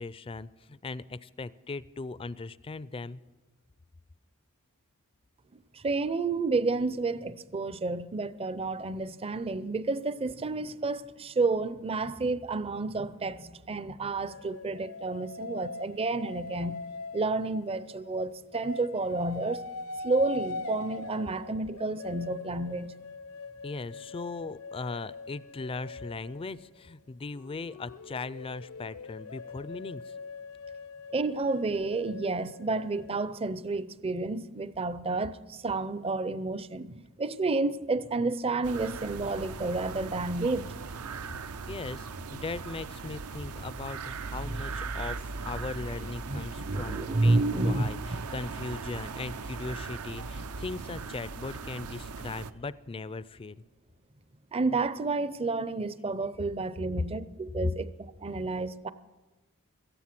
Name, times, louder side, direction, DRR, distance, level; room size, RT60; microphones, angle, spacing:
voice 1, 0.0-3.2 23.6-30.1 41.7-53.6 57.6-57.7, left 3 dB, 25° left, 0.4 m, -38 dB
voice 2, 5.5-16.8 17.1-19.6 20.0-22.9 31.1-40.7 46.3-47.9 54.5-57.9 58.2-58.9, right 3 dB, 25° right, 0.5 m, -30 dB
sound 1, 14.3-18.1 18.5-26.6 27.3-33.2, left 3 dB, 75° left, 0.7 m, -42 dB
sound 2, 38.6-52.5, right 4 dB, 80° right, 0.7 m, -39 dB
17.0 x 14.5 x 6.0 m
head